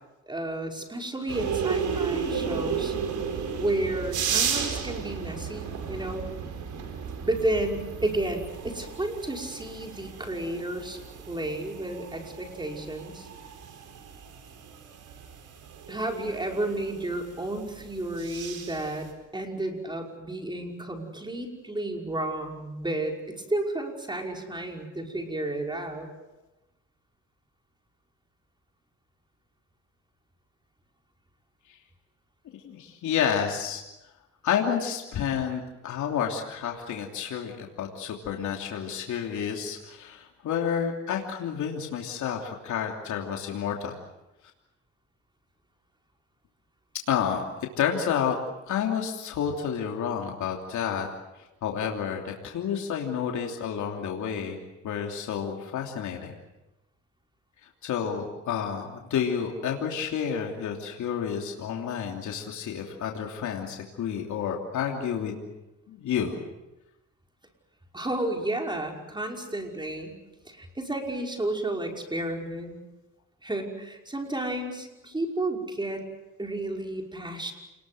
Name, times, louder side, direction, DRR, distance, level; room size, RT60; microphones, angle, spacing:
voice 1, 0.3-3.0 3.6-6.3 7.2-11.0 11.3-13.3 15.9-19.1 19.3-26.1 67.9-70.1 70.5-72.8 73.4-76.0 76.4-77.5, right 1 dB, 15° right, 2 dB, 5.4 m, -32 dB
sound 1, 1.3-19.1, right 6 dB, 75° right, 5.2 m, -34 dB
voice 2, 32.6-33.8 34.4-44.0 47.1-47.4 47.8-48.4 48.7-51.1 51.3-56.4 57.6-65.4 65.9-66.4, left 8 dB, 75° left, 1 dB, 3.1 m, -30 dB
29.0 x 20.5 x 7.9 m, 1.0 s
cardioid pair, 90°, 30 cm